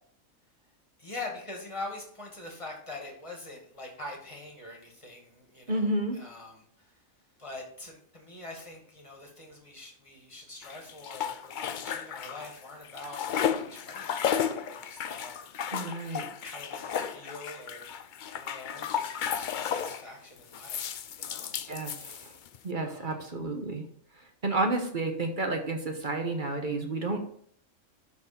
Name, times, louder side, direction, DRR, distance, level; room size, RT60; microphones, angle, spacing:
voice 1, 1.0-7.0 7.4-15.9 16.4-17.9 18.3-21.6 22.8-23.2, left 2 dB, 20° left, 0 dB, 2.1 m, -44 dB
voice 2, 5.7-6.2 15.7-16.2 21.7-22.3 22.6-23.8 24.2-27.2, right 2 dB, 40° right, 4 dB, 1.2 m, -31 dB
sound 1, 10.6-12.6 12.8-20.1 20.5-22.6, left 8 dB, 85° left, 0.4 m, -33 dB
12.0 x 4.2 x 4.4 m, 0.62 s
omnidirectional pair, 1.5 m